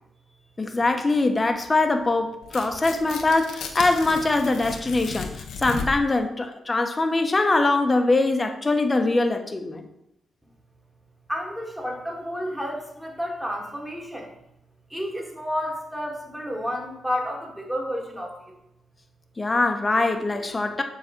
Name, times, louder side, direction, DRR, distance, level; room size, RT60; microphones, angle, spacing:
voice 1, 0.6-9.9 19.4-20.8, left 2 dB, 30° left, 5 dB, 1.1 m, -22 dB
Tearing, 2.4-6.2, left 5 dB, 80° left, 1.0 m, -35 dB
voice 2, 11.3-14.3 14.9-18.6, equal, 5° right, 0 dB, 2.2 m, -31 dB
7.5 x 3.9 x 6.1 m, 0.80 s
cardioid pair, 60°, 0 cm